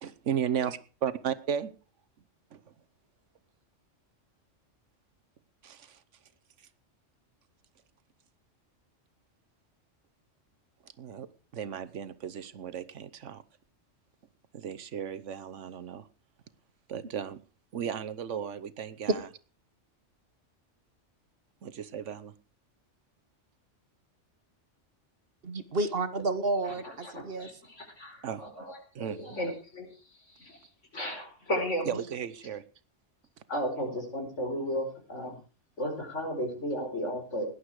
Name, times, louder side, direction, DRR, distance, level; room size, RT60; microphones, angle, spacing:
voice 1, 0.0-1.7 11.0-11.3 11.5-13.4 14.6-16.0 16.9-17.4 17.7-19.3 21.6-22.3 28.2-28.4 29.0-29.2 31.8-32.6, right 8 dB, 75° right, 1.3 m, -34 dB
voice 2, 25.4-27.5, right 2 dB, 50° right, 1.5 m, -31 dB
voice 3, 26.6-29.9 30.3-30.7 30.9-32.0 33.5-35.4 35.8-37.4, equal, 75° left, 4.8 m, -34 dB
18.0 x 11.5 x 4.8 m
omnidirectional pair, 1.2 m